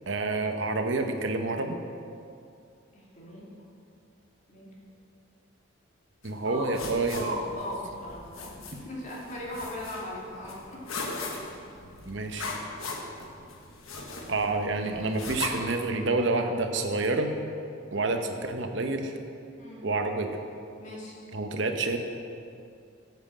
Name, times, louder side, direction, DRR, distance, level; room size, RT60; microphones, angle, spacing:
voice 1, 0.1-1.8 6.2-7.4 12.0-12.5 14.3-17.3 17.9-19.1 19.8-20.4 21.3-22.0, right 3 dB, 65° right, 5 dB, 0.9 m, -28 dB
voice 2, 2.9-3.7 4.5-4.7 6.4-6.7 7.1-11.4 19.6-19.9 20.8-21.1, equal, 35° left, -4 dB, 2.3 m, -39 dB
sound 1, 6.2-15.5, left 3 dB, 85° left, 1.4 m, -40 dB
9.3 x 7.6 x 7.3 m, 2.4 s
head